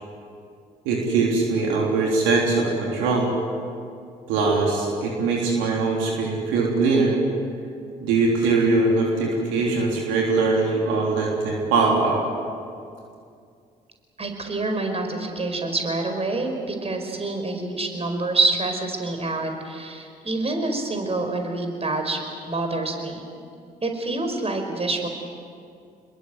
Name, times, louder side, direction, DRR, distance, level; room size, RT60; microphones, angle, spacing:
voice 1, 0.9-3.3 4.3-7.1 8.0-12.2, right 3 dB, 70° right, -1 dB, 3.6 m, -21 dB
voice 2, 14.2-22.2 22.5-23.2 23.8-25.1, right 2 dB, 30° right, 4 dB, 5.0 m, -26 dB
26.5 x 21.5 x 8.0 m, 2.4 s
figure-of-eight pair, 45°, 20 cm